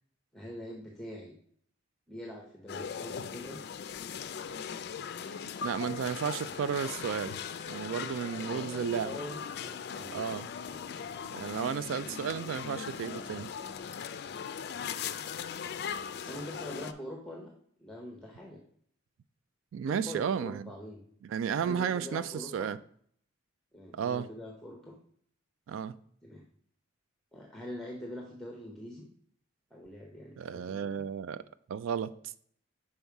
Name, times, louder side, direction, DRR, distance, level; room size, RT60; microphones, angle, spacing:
voice 1, 0.3-1.3 2.1-3.6 8.4-10.3 10.7-10.9 11.9-12.7 16.1-17.5 17.8-18.6 19.9-21.0 21.6-22.7 23.7-25.0 26.2-26.4 27.3-29.1 29.7-31.0, left 1 dB, ahead, 0.7 m, -44 dB
sound 1, 2.7-16.9, left 7 dB, 50° left, 0.3 m, -39 dB
voice 2, 5.6-7.4 7.7-9.1 10.1-10.5 11.3-13.5 19.7-20.6 21.2-22.8 23.9-24.3 25.7-26.0 30.4-31.4 31.7-32.1, right 7 dB, 80° right, 0.3 m, -33 dB
5.5 x 4.4 x 4.6 m
head